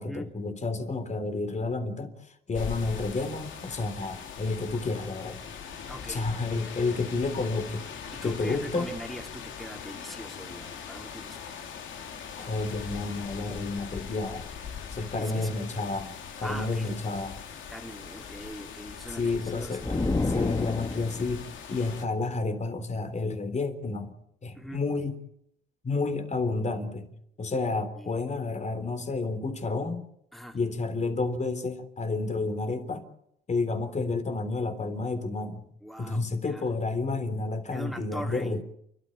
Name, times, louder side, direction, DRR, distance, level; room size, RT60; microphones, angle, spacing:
voice 1, 0.0-2.1 2.5-5.4 6.1-7.8 8.2-8.9 12.4-14.5 14.9-17.4 19.2-20.0 20.3-24.1 24.4-25.2 25.8-27.1 27.4-30.0 30.5-33.1 33.5-35.6 36.0-38.6, left 3 dB, 35° left, 8 dB, 3.7 m, -30 dB
sound 1, 2.5-22.0, left 7 dB, 75° left, 2.9 m, -41 dB
voice 2, 5.9-6.3 8.1-11.5 15.2-15.6 16.4-17.0 17.7-19.8 24.5-24.9 27.9-28.1 30.3-30.6 35.8-36.7 37.7-38.6, equal, ahead, 4 dB, 3.1 m, -41 dB
sound 2, 19.8-21.4, left 3 dB, 20° left, 1.4 m, -28 dB
29.0 x 13.0 x 9.9 m, 0.76 s
cardioid pair, 90°, 20 cm